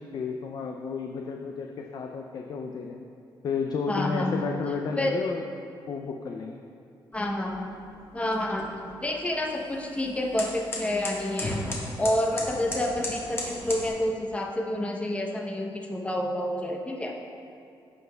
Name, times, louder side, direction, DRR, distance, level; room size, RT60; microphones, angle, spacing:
voice 1, 0.0-3.0 3.4-5.4 5.9-6.6, left 5 dB, 50° left, 2 dB, 0.4 m, -32 dB
voice 2, 3.9-4.4 5.0-5.1 7.1-7.7 8.1-11.7 12.0-17.1, left 1 dB, 15° left, 0 dB, 0.7 m, -29 dB
sound 1, 7.1-13.9, left 1 dB, 30° left, 1.3 m, -37 dB
13.5 x 5.4 x 2.2 m, 2.5 s
cardioid pair, 135°, 9 cm